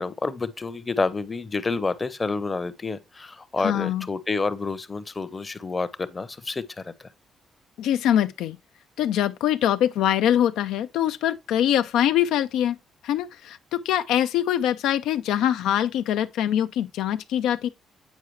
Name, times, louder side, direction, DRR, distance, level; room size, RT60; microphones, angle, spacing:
voice 1, 0.0-7.1, left 3 dB, 25° left, 0.7 m, -29 dB
voice 2, 3.6-4.1 7.8-8.6 9.0-12.8 13.0-17.7, left 11 dB, 90° left, 0.4 m, -23 dB
8.2 x 4.8 x 3.1 m
cardioid pair, 90°, 0 cm